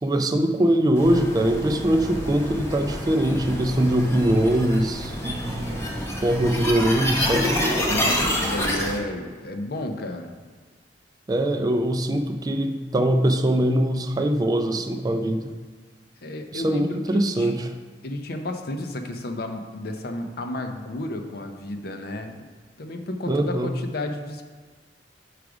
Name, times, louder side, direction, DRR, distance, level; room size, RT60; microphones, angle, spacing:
voice 1, 0.0-5.9 6.2-7.6 11.3-15.5 16.5-17.7 23.3-23.7, right 1 dB, 20° right, 6 dB, 0.3 m, -22 dB
sound 1, 1.0-9.0, equal, 15° left, 0.9 m, -27 dB
voice 2, 7.8-10.4 16.2-17.5 18.0-22.5 22.8-24.4, left 1 dB, 55° left, 5 dB, 0.6 m, -32 dB
4.9 x 4.8 x 4.8 m, 1.5 s
head